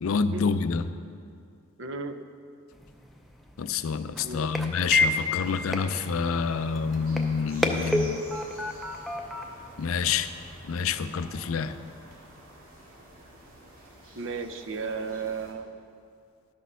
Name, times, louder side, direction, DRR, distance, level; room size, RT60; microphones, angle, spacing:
voice 1, 0.0-0.8 3.6-8.2 9.8-10.3 10.7-11.7, left 5 dB, 75° left, 12 dB, 0.4 m, -27 dB
voice 2, 1.8-2.2 4.2-4.5 14.2-15.7, right 4 dB, 60° right, 9 dB, 0.6 m, -34 dB
sound 1, 2.7-10.6, left 2 dB, ahead, 0.5 m, -31 dB
sound 2, 4.7-15.5, right 1 dB, 90° right, 2.1 m, -49 dB
12.0 x 6.2 x 5.5 m, 2.3 s
head